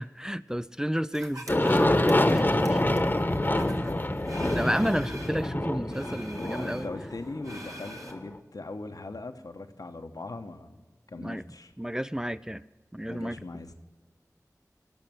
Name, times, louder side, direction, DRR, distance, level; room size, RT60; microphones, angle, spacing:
voice 1, 0.0-2.8 4.5-6.9 11.2-11.4 11.8-12.6 12.9-13.4, equal, 10° right, 15 dB, 0.4 m, -31 dB
sound 1, 1.1-5.5 5.9-8.1, right 1 dB, 60° right, 1.6 m, -43 dB
Aircraft, 1.5-8.2, left 1 dB, 30° left, 1.0 m, -26 dB
voice 2, 3.5-4.1 6.4-11.7 13.1-13.7, left 3 dB, 80° left, 7 dB, 1.0 m, -40 dB
18.0 x 6.4 x 7.7 m, 1.4 s
wide cardioid pair, 45°, 6 cm